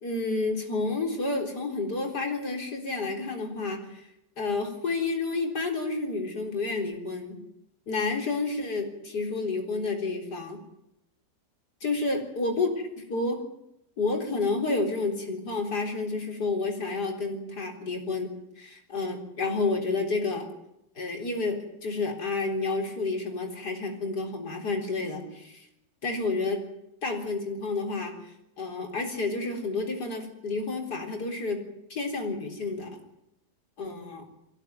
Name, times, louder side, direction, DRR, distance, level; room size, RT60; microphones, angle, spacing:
voice 1, 0.0-4.1 4.4-7.4 7.9-10.6 11.8-13.4 14.0-18.3 18.6-20.5 21.0-25.7 26.0-26.6 27.0-28.1 28.6-31.6 31.9-32.9 33.8-34.2, left 3 dB, 70° left, 2 dB, 4.5 m, -30 dB
23.5 x 16.5 x 9.5 m, 0.84 s
omnidirectional pair, 1.8 m